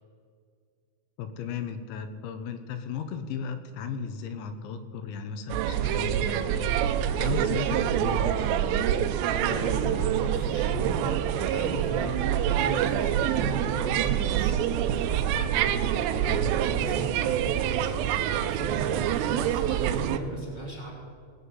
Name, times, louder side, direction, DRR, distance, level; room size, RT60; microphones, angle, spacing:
voice 1, 1.2-6.8 7.2-8.3 16.3-16.6, left 7 dB, 80° left, 8 dB, 2.9 m, -35 dB
sound 1, 5.5-20.2, right 10 dB, 85° right, 2.5 m, -26 dB
voice 2, 9.3-20.9, right 1 dB, 15° right, -5 dB, 1.6 m, -38 dB
20.0 x 8.3 x 5.5 m, 2.2 s
omnidirectional pair, 5.4 m